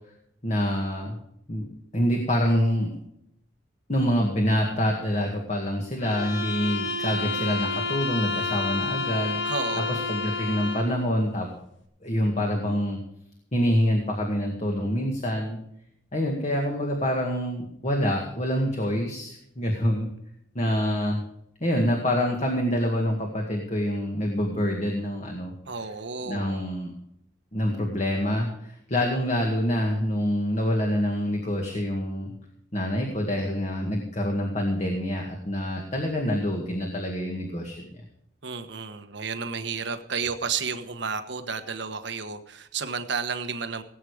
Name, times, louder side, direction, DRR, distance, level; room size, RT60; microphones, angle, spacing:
voice 1, 0.4-1.2 1.5-1.7 1.9-2.9 3.9-9.4 9.9-11.5 12.0-13.0 13.5-15.6 16.1-20.1 20.5-21.2 21.6-25.5 26.2-26.9 27.5-32.3 32.7-37.8, equal, 40° left, 1 dB, 2.1 m, -26 dB
sound 1, 6.0-11.0, left 3 dB, 80° left, 2.1 m, -30 dB
voice 2, 9.4-10.0 25.7-26.7 38.4-43.8, right 5 dB, 65° right, 8 dB, 1.2 m, -32 dB
18.0 x 8.6 x 5.0 m, 0.74 s
head